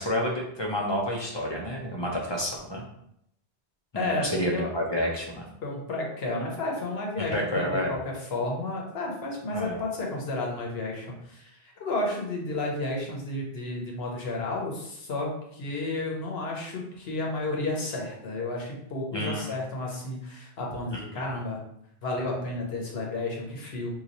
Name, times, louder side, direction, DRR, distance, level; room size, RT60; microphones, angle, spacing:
voice 1, 0.0-2.8 3.9-5.4 7.3-7.9 9.5-9.8 19.1-19.5 20.9-21.2, equal, 35° left, -2 dB, 0.5 m, -29 dB
voice 2, 3.9-4.7 5.6-21.6 22.0-23.9, left 2 dB, 80° left, -1 dB, 1.1 m, -32 dB
3.0 x 2.3 x 3.9 m, 0.75 s
omnidirectional pair, 1.0 m